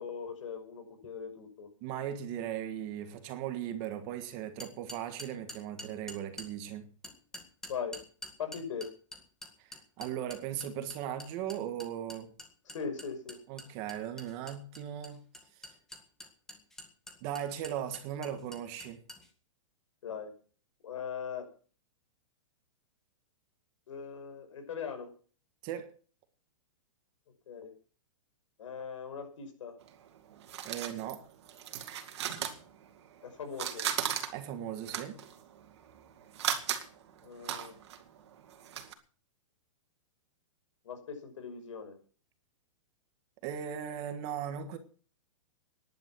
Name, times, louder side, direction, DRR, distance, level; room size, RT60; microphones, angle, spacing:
voice 1, 0.0-1.7 7.7-8.0 8.4-8.9 12.7-13.4 20.0-20.3 20.8-21.5 23.9-25.1 27.5-27.7 28.6-29.8 33.2-33.8 37.2-37.8 40.8-42.0, left 6 dB, 70° left, 5.9 m, -40 dB
voice 2, 1.8-6.9 9.6-12.3 13.5-15.2 15.6-15.7 17.2-19.0 25.6-25.9 30.6-31.3 34.3-35.2 43.4-44.8, right 10 dB, 25° right, 1.6 m, -38 dB
sound 1, 4.6-6.5 7.0-19.3, left 1 dB, 5° left, 1.8 m, -46 dB
sound 2, 29.8-33.2 33.5-38.9, right 9 dB, 55° right, 2.6 m, -37 dB
16.5 x 11.0 x 6.2 m
hypercardioid pair, 170°, 17 cm